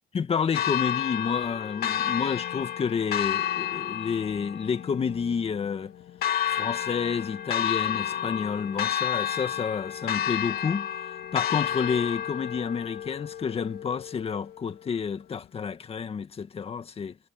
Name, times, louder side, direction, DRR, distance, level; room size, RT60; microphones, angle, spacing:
voice 1, 0.1-5.9 6.5-17.2, left 6 dB, 35° left, 2.0 m, -30 dB
Church bell, 0.5-14.5, left 10 dB, 65° left, 2.3 m, -31 dB
cardioid pair, 110°, 17 cm